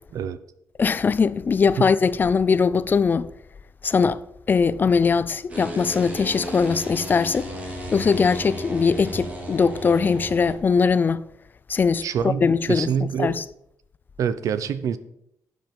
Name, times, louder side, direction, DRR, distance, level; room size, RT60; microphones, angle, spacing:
voice 1, 0.8-3.3 3.8-4.2 4.5-7.5 7.9-11.2 11.7-12.0 12.4-12.9 13.2-13.4, left 5 dB, 35° left, 0.5 m, -21 dB
sound 1, 5.5-10.5, equal, 25° right, 3.0 m, -34 dB
voice 2, 12.0-13.4 14.2-15.0, right 8 dB, 70° right, 0.8 m, -26 dB
11.5 x 7.6 x 5.4 m
cardioid pair, 125°, 6 cm